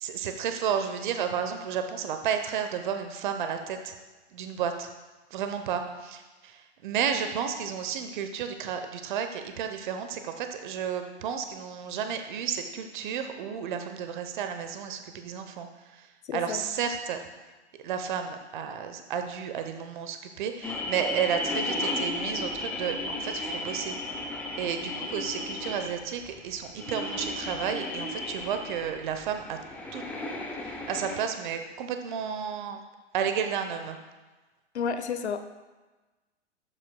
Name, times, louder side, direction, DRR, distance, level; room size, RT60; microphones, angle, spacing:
voice 1, 0.0-3.9 4.3-4.9 5.3-15.7 15.9-16.1 16.3-17.2 17.8-23.9 24.5-29.6 29.9-30.0 30.6-32.8 33.1-34.0, right 7 dB, 45° right, 7 dB, 0.9 m, -32 dB
voice 2, 16.3-16.6 34.7-35.4, left 6 dB, 70° left, 9 dB, 0.8 m, -30 dB
sound 1, 20.6-31.2, left 2 dB, 5° left, 0.4 m, -34 dB
11.0 x 7.5 x 2.2 m, 1.2 s
figure-of-eight pair, 120°, 34 cm